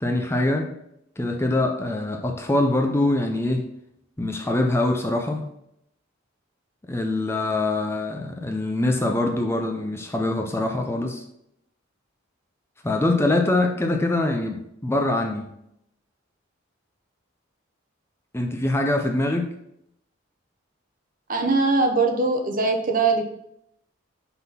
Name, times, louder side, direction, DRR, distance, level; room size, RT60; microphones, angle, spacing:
voice 1, 0.0-0.7 1.2-3.7 4.2-5.5 6.9-11.2 12.8-15.5 18.3-19.5, left 2 dB, 15° left, 3 dB, 0.6 m, -24 dB
voice 2, 21.3-23.2, right 3 dB, 40° right, 4 dB, 0.9 m, -21 dB
5.9 x 3.8 x 5.7 m, 0.75 s
head